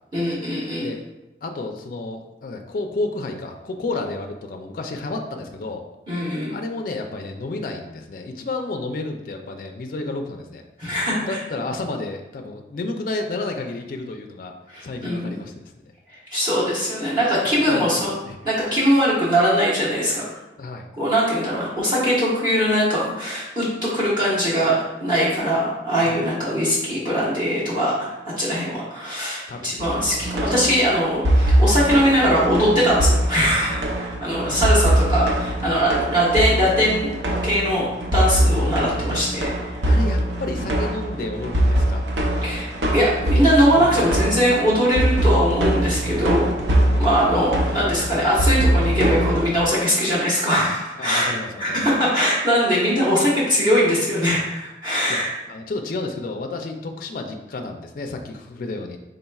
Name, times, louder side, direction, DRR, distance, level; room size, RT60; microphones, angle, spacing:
voice 1, 0.1-0.9 6.1-6.6 10.8-11.4 14.7-15.4 16.3-18.1 18.4-20.2 21.0-37.1 37.4-39.8 42.4-42.6 42.9-46.5 47.0-51.3 51.6-55.3, equal, 25° right, -9 dB, 1.1 m, -21 dB
voice 2, 1.4-5.8 6.5-10.6 11.3-14.5 14.8-15.7 17.5-18.4 20.6-20.9 26.0-26.2 29.5-29.7 39.1-39.2 39.8-42.1 43.7-44.3 46.8-47.1 51.0-51.9 54.9-55.2 55.5-59.0, left 2 dB, 50° left, 4 dB, 0.3 m, -31 dB
sound 1, 29.8-49.7, right 1 dB, 85° right, 0.6 m, -22 dB
4.0 x 3.8 x 2.3 m, 1.0 s
head